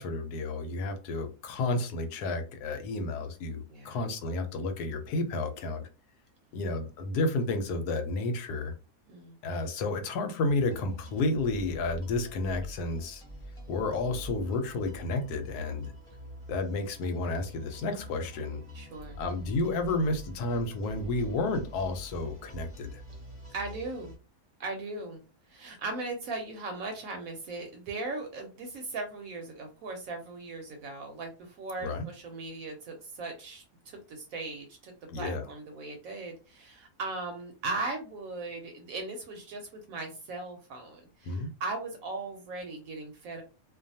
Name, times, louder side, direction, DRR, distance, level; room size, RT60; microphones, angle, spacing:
voice 1, 0.0-5.9 6.5-8.7 9.4-13.2 13.7-15.9 16.5-18.6 19.2-23.0 31.8-32.1 35.1-35.4 41.3-41.5, left 2 dB, 80° left, 6 dB, 1.1 m, -31 dB
sound 1, 10.5-24.2, equal, 5° left, 0.8 m, -46 dB
voice 2, 18.7-19.2 23.5-24.2 24.6-25.2 25.5-43.4, right 3 dB, 70° right, 4 dB, 0.9 m, -38 dB
2.5 x 2.2 x 2.6 m, 0.32 s
omnidirectional pair, 1.7 m